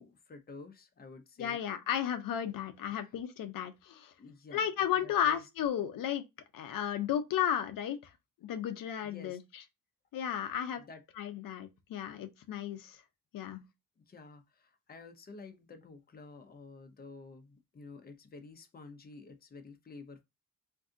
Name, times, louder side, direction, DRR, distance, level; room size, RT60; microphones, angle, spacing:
voice 1, 0.0-1.6 2.9-3.1 4.2-4.7 5.0-5.4 9.0-9.4 10.8-11.0 14.0-20.2, left 3 dB, 30° left, 0.6 m, -51 dB
voice 2, 1.4-4.1 4.5-6.2 6.5-8.1 8.4-9.4 10.1-10.8 11.2-13.0 13.3-13.6, left 9 dB, 85° left, 0.6 m, -33 dB
2.6 x 2.4 x 3.6 m
cardioid pair, 90°, 33 cm